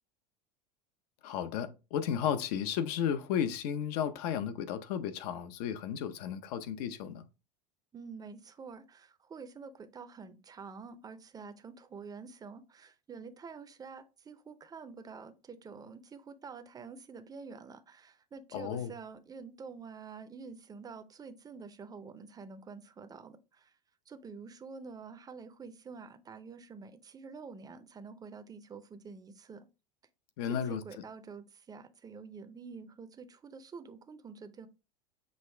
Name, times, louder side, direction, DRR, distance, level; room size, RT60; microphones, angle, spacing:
voice 1, 1.2-7.2 18.5-18.9 30.4-31.0, left 8 dB, 65° left, 0.7 m, -34 dB
voice 2, 7.9-23.7 24.1-29.7 30.5-34.7, right 5 dB, 20° right, 0.6 m, -48 dB
6.4 x 2.4 x 3.2 m
hypercardioid pair, 105°, 21 cm